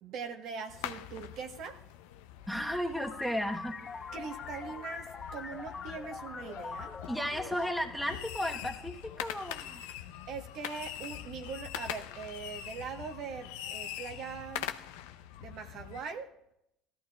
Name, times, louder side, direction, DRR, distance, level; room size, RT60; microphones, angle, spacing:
voice 1, 0.0-1.8 4.1-6.9 10.3-14.7 15.4-16.4, right 5 dB, 60° right, 1.3 m, -41 dB
sound 1, 0.7-16.0, left 11 dB, 80° left, 0.6 m, -43 dB
voice 2, 2.5-3.8 7.1-9.8, equal, ahead, 1.2 m, -34 dB
sound 2, 3.0-9.2, left 5 dB, 35° left, 0.9 m, -44 dB
17.5 x 13.0 x 2.4 m
hypercardioid pair, 80°, 0 cm